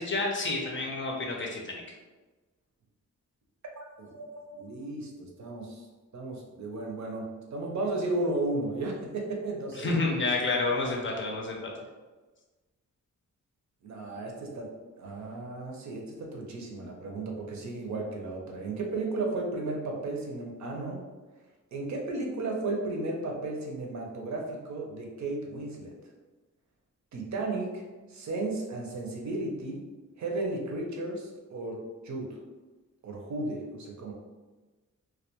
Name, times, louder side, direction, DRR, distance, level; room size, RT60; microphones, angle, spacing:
voice 1, 0.0-2.0 9.7-11.7, left 3 dB, 40° left, -1 dB, 0.5 m, -29 dB
voice 2, 3.8-5.8 6.1-9.9 13.8-21.0 21.7-25.9 27.1-29.9 30.2-32.4 33.0-34.1, right 2 dB, 65° right, 0 dB, 0.6 m, -34 dB
2.2 x 2.2 x 2.8 m, 1.2 s
wide cardioid pair, 120°, 31 cm